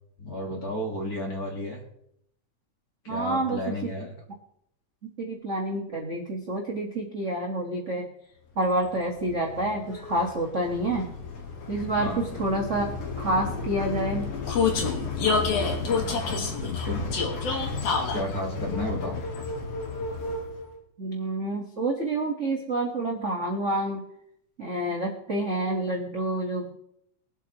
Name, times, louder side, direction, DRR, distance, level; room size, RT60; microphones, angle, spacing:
voice 1, 0.2-1.8 3.0-4.1 12.0-12.3 16.0-17.1 18.1-19.2, left 1 dB, 35° left, -1 dB, 1.8 m, -32 dB
voice 2, 3.1-3.9 5.0-8.1 8.5-11.1 11.7-12.9 13.2-14.3 21.0-24.0 24.6-26.8, right 1 dB, 40° right, -1 dB, 1.0 m, -28 dB
Vehicle, 8.8-20.7, left 4 dB, 60° left, 2.4 m, -30 dB
23.0 x 8.1 x 3.0 m, 0.74 s
omnidirectional pair, 3.5 m